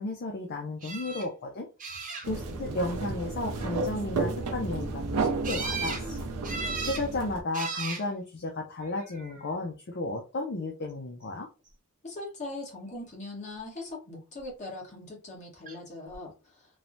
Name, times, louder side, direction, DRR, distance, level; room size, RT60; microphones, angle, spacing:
voice 1, 0.0-11.5, left 2 dB, 50° left, 0.5 m, -34 dB
sound 1, 0.8-1.3 1.8-2.5 5.4-6.0 6.4-7.1 7.5-8.0 9.0-9.4 15.7-15.8 16.1-16.2, right 4 dB, 35° right, 0.8 m, -36 dB
sound 2, 2.2-7.4, right 3 dB, 90° right, 0.5 m, -32 dB
voice 2, 12.0-16.7, left 2 dB, 35° left, 1.2 m, -40 dB
3.2 x 2.1 x 2.6 m
head